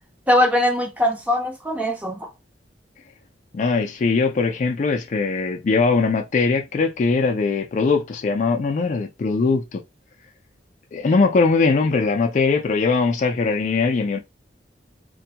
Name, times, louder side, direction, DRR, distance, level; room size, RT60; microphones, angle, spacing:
voice 1, 0.3-2.3, left 1 dB, 10° right, 0.5 m, -21 dB
voice 2, 3.5-9.8 10.9-14.2, left 4 dB, 45° left, 0.3 m, -21 dB
2.6 x 2.2 x 2.8 m
head